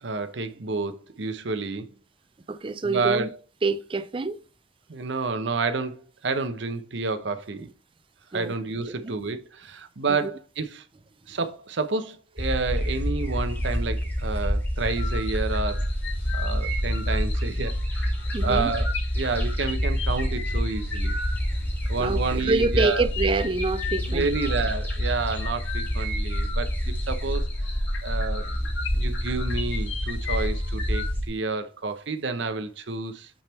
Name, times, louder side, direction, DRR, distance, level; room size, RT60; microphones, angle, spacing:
voice 1, 0.0-1.9 2.8-3.3 4.9-6.0 6.2-7.7 8.3-10.8 11.3-15.9 16.3-18.1 18.4-18.9 19.2-21.1 21.9-23.1 24.1-27.5 28.0-28.6 28.9-33.3, right 4 dB, 70° right, 0.7 m, -29 dB
voice 2, 2.5-3.3 3.6-4.4 8.3-8.5 9.0-9.1 10.1-10.3 18.3-18.7 22.0-24.3, right 3 dB, 25° right, 0.4 m, -26 dB
sound 1, 12.4-31.3, equal, 10° left, 1.7 m, -27 dB
sound 2, 14.8-31.1, left 4 dB, 80° left, 1.8 m, -38 dB
8.8 x 3.5 x 4.3 m
head